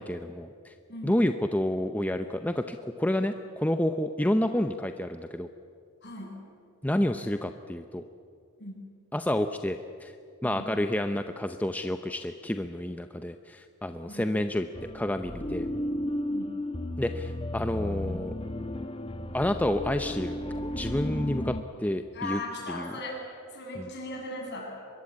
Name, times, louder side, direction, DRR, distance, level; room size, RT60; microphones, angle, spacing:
voice 1, 0.0-0.7 1.0-5.5 6.8-8.0 9.1-10.1 10.4-14.7 14.9-15.7 17.0-18.3 19.3-20.4 20.6-22.4 22.7-23.0 23.7-23.9, left 1 dB, 5° left, 7 dB, 0.6 m, -29 dB
voice 2, 0.9-1.2 6.0-6.4 8.6-8.7 10.4-10.7 14.1-14.3 16.3-16.4 22.1-23.2 23.5-24.7, left 2 dB, 50° left, 0 dB, 7.3 m, -37 dB
sound 1, 14.7-21.6, left 1 dB, 25° left, 1.1 m, -34 dB
24.0 x 21.5 x 8.5 m, 2.4 s
head